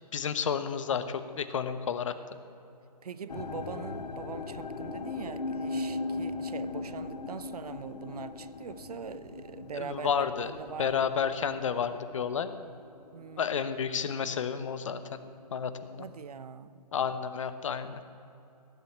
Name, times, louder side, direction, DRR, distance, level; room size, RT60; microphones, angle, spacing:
voice 1, 0.1-2.1 9.7-10.5 10.8-12.5 13.4-15.2 15.5-16.0 16.9-18.0, left 7 dB, 50° left, 12 dB, 0.9 m, -31 dB
voice 2, 3.0-11.0 13.1-13.6 16.0-16.8, right 6 dB, 65° right, 14 dB, 0.7 m, -42 dB
sound 1, 3.3-14.5 14.7-15.4 15.9-16.0, left 3 dB, 75° left, 1.0 m, -39 dB
17.0 x 7.4 x 8.5 m, 2.8 s
hypercardioid pair, 150°, 21 cm